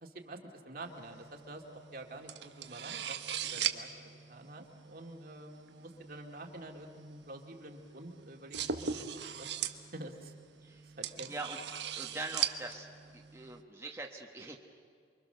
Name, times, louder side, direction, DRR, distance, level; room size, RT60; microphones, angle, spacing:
voice 1, 0.0-10.3 10.8-11.3, right 1 dB, 55° right, 2 dB, 2.3 m, -48 dB
sound 1, 0.8-13.6, right 8 dB, 75° right, 1.2 m, -41 dB
voice 2, 11.9-12.9 13.1-14.6, right 2 dB, 15° right, 0 dB, 1.4 m, -43 dB
28.5 x 23.5 x 6.8 m, 2.3 s
head